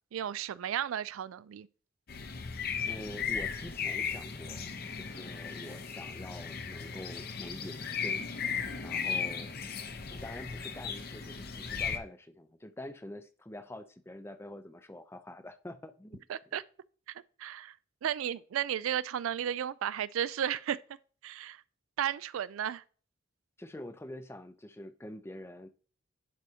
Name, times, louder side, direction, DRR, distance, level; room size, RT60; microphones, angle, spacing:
voice 1, 0.1-1.7 16.3-16.6 17.1-17.7 18.0-20.8 21.2-21.6 22.0-22.8, right 9 dB, 80° right, 0.3 m, -34 dB
sound 1, 2.1-12.0, left 6 dB, 45° left, 0.7 m, -36 dB
voice 2, 2.8-8.3 8.8-9.7 10.1-16.2 23.6-25.7, left 1 dB, 10° left, 0.5 m, -46 dB
11.0 x 4.8 x 2.8 m
head